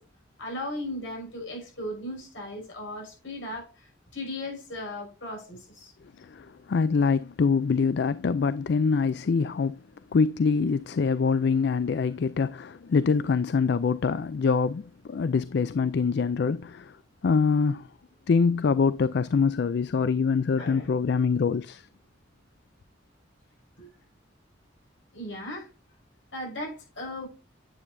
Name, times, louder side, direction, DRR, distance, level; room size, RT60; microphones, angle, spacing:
voice 1, 0.4-3.7 4.1-5.9 20.6-20.9 23.8-23.9 25.1-25.7 26.3-27.3, left 1 dB, 80° left, 6.1 m, -36 dB
voice 2, 6.2-9.8 10.1-17.0 17.2-17.9 18.3-21.9, left 5 dB, 60° left, 0.4 m, -24 dB
9.8 x 8.8 x 2.6 m
head